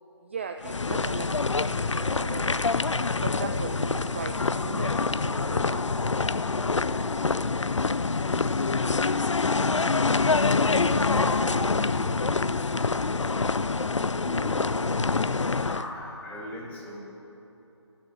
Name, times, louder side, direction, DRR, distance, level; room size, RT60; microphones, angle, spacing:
voice 1, 0.2-6.3 8.1-10.3 10.8-11.1 11.4-12.3, right 6 dB, 25° right, 5 dB, 0.3 m, -40 dB
sound 1, 0.6-15.9, left 4 dB, 85° left, 0.5 m, -26 dB
voice 2, 14.2-14.8 15.5-17.0, left 1 dB, 10° left, -3 dB, 1.6 m, -38 dB
13.0 x 6.8 x 9.9 m, 2.9 s
figure-of-eight pair, 150°, 15 cm